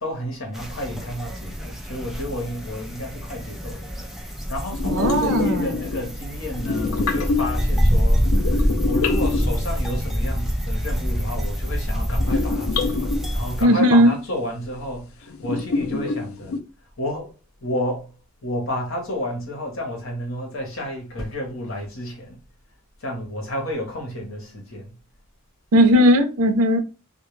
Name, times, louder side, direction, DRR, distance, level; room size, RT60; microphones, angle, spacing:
voice 1, 0.0-4.0 4.5-15.1 15.4-16.5 17.0-17.3 17.6-18.1 18.4-22.4 23.0-24.9, left 1 dB, 65° left, 1.0 m, -31 dB
sound 1, 0.5-13.6, equal, ahead, 0.3 m, -25 dB
sound 2, 4.7-6.3 6.5-7.7 8.2-10.0 12.2-13.4 14.8-14.9 15.3-16.6, left 4 dB, 85° left, 0.4 m, -26 dB
voice 2, 4.8-5.8 13.6-14.2 25.7-26.8, equal, 90° right, 0.5 m, -17 dB
2.3 x 2.2 x 3.0 m
head